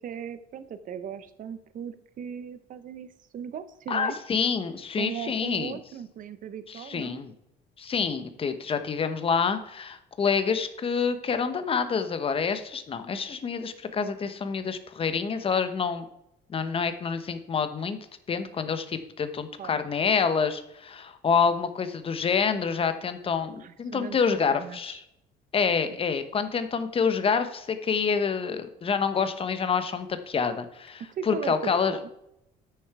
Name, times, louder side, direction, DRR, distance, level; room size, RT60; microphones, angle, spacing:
voice 1, 0.0-4.2 5.0-7.2 19.6-19.8 23.6-24.2 24.5-25.0 25.8-26.0 31.1-32.1, right 8 dB, 55° right, 12 dB, 0.9 m, -38 dB
voice 2, 3.9-5.8 6.7-7.3 7.8-16.0 16.5-18.0 18.3-25.0 25.5-32.0, left 6 dB, 35° left, 10 dB, 1.0 m, -27 dB
9.4 x 6.7 x 4.7 m, 0.79 s
cardioid pair, 110°, 17 cm